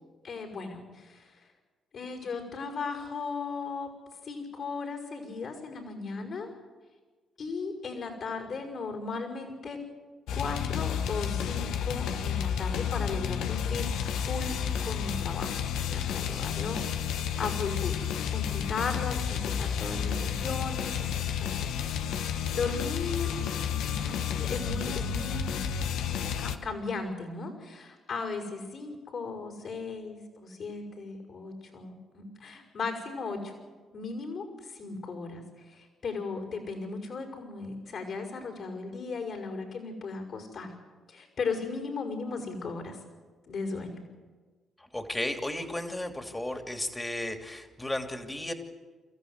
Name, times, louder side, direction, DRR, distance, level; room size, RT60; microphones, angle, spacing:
voice 1, 0.2-1.4 1.9-3.9 4.2-6.5 7.4-9.8 10.3-15.6 15.9-18.0 18.3-21.1 21.4-21.5 22.0-23.4 23.8-33.5 33.9-40.7 41.1-43.0 43.5-44.0, left 4 dB, 60° left, 1 dB, 5.8 m, -36 dB
sound 1, 10.3-26.6, left 8 dB, 80° left, 1.2 m, -31 dB
voice 2, 19.6-20.1 44.8-48.5, left 1 dB, 15° left, 5 dB, 2.9 m, -34 dB
27.5 x 14.5 x 8.2 m, 1.4 s
supercardioid pair, 60°, 0 cm